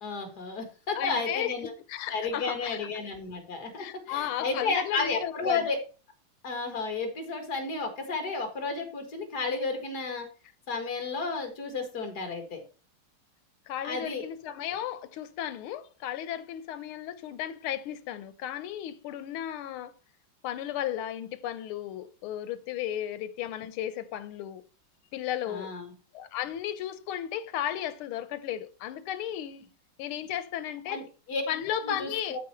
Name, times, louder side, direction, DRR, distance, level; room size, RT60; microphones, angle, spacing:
voice 1, 0.0-1.7 2.1-5.8 6.4-10.3 10.7-12.6 13.8-14.2 25.5-25.9 30.9-31.4 31.8-32.4, left 4 dB, 50° left, 2.2 m, -32 dB
voice 2, 0.9-1.5 1.9-2.9 3.8-5.7 13.7-19.9 20.4-24.6 25.1-25.7 26.1-29.7 30.0-31.0 31.5-32.4, left 11 dB, 85° left, 1.6 m, -34 dB
12.5 x 4.3 x 4.3 m
omnidirectional pair, 2.3 m